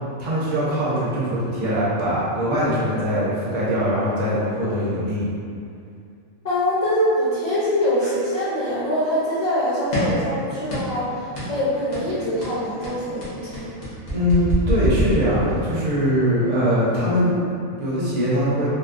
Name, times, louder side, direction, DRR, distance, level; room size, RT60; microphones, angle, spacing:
voice 1, 0.2-5.2 14.1-18.7, equal, 75° right, -8 dB, 1.3 m, -22 dB
voice 2, 6.4-13.7, left 1 dB, 60° left, -12 dB, 0.4 m, -23 dB
sound 1, 9.9-10.3 10.7-11.0 11.3-11.6 11.9-12.1 12.4-15.7, equal, 35° left, 0.9 m, -26 dB
3.6 x 2.3 x 2.5 m, 2.4 s
omnidirectional pair, 1.5 m